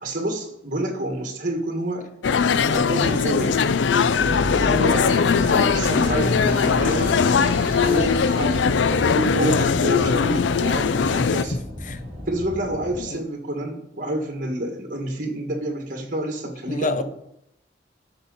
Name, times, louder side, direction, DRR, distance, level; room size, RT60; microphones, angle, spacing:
voice 1, 0.0-2.1 2.5-3.6 4.4-7.2 7.7-11.5 12.3-17.0, right 1 dB, 45° right, 1.8 m, -28 dB
sound 1, 2.2-11.4, left 6 dB, 85° left, 0.4 m, -20 dB
sound 2, 4.2-13.0, equal, 15° right, 3.3 m, -31 dB
voice 2, 11.0-12.0 13.0-13.2 16.7-17.0, left 2 dB, 45° left, 0.6 m, -29 dB
13.5 x 5.8 x 4.0 m
head